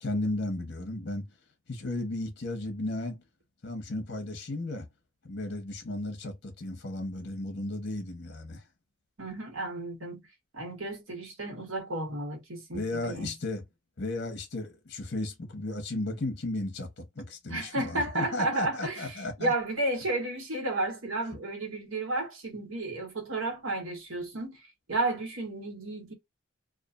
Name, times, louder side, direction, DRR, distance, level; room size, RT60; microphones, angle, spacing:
voice 1, 0.0-1.3 1.7-3.2 3.6-4.9 5.2-8.6 12.7-13.6 14.0-19.5, left 2 dB, 55° left, 0.8 m, -34 dB
voice 2, 9.2-10.2 10.5-13.3 17.5-24.6 24.9-26.1, right 2 dB, 85° right, 1.2 m, -32 dB
2.5 x 2.4 x 2.3 m
head